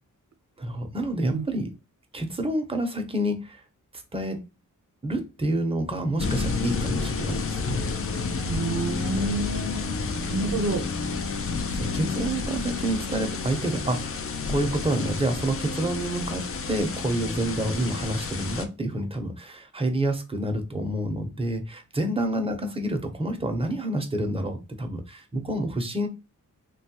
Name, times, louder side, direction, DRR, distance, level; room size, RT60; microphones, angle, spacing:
voice 1, 0.6-1.7 2.1-3.6 4.1-4.4 5.0-7.9 11.6-14.1 14.5-26.1, right 1 dB, 20° right, 0.6 m, -28 dB
sound 1, 6.2-18.6, left 4 dB, 45° left, 0.4 m, -30 dB
voice 2, 8.5-10.0 10.3-10.8, right 2 dB, 55° right, 0.7 m, -28 dB
3.1 x 2.3 x 2.8 m
wide cardioid pair, 120°, 32 cm